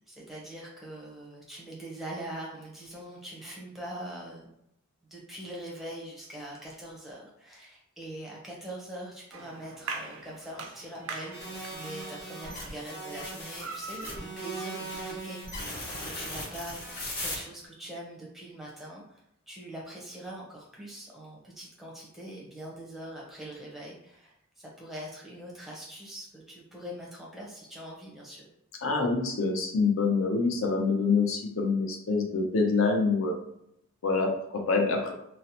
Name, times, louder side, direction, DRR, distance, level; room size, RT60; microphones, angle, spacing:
voice 1, 0.1-4.5 5.1-28.5, right 1 dB, ahead, -4 dB, 0.6 m, -43 dB
sound 1, 9.3-14.8, right 4 dB, 65° right, 0.3 m, -43 dB
sound 2, 11.3-17.4, equal, 45° left, 1.0 m, -38 dB
voice 2, 28.8-33.3 34.0-35.1, left 4 dB, 65° left, 2 dB, 0.5 m, -26 dB
2.8 x 2.0 x 2.8 m, 0.77 s
head